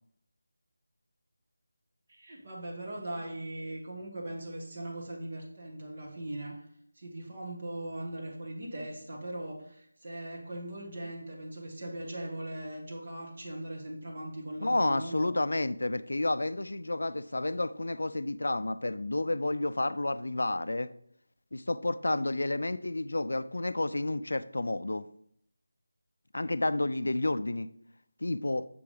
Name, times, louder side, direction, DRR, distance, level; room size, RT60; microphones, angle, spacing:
voice 1, 2.1-6.6 7.0-15.3 22.0-22.2 26.4-26.6, right 1 dB, 30° right, -1 dB, 1.2 m, -40 dB
voice 2, 14.6-20.9 21.5-25.1 26.3-27.7 28.2-28.7, left 2 dB, 75° left, 14 dB, 0.4 m, -30 dB
6.8 x 3.5 x 5.0 m, 0.69 s
figure-of-eight pair, 180°, 0 cm